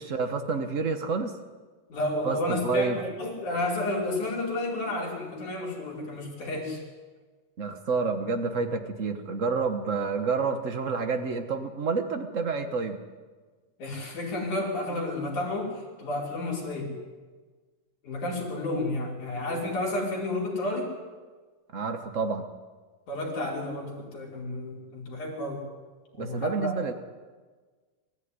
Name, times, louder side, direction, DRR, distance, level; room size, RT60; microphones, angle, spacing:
voice 1, 0.0-1.3 2.2-2.4 2.6-3.0 7.6-13.0 21.7-22.4 26.2-26.9, right 4 dB, 80° right, 7 dB, 0.7 m, -29 dB
voice 2, 1.9-6.8 13.8-16.9 18.0-20.9 23.1-25.7 26.2-26.9, left 2 dB, 70° left, -2 dB, 6.3 m, -31 dB
24.5 x 15.0 x 9.8 m, 1.4 s
omnidirectional pair, 3.6 m